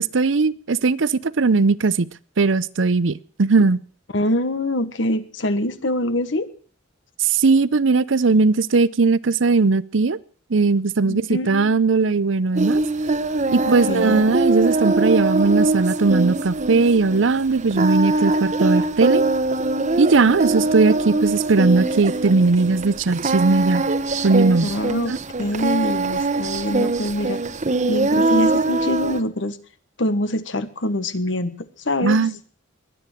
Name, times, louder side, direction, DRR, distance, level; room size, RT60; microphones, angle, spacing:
voice 1, 0.0-2.1 2.4-3.8 7.2-10.2 10.5-12.8 13.5-19.2 20.0-23.8 24.2-24.7 25.1-25.2 32.0-32.3, right 4 dB, 75° right, 0.7 m, -18 dB
voice 2, 4.1-6.5 11.0-11.7 13.7-14.3 24.6-25.1 25.4-27.4 27.9-29.6 30.0-31.5 31.8-32.2, left 1 dB, 70° left, 1.4 m, -24 dB
Singing, 12.6-29.2, right 2 dB, 40° right, 1.0 m, -22 dB
22.0 x 9.5 x 6.6 m
head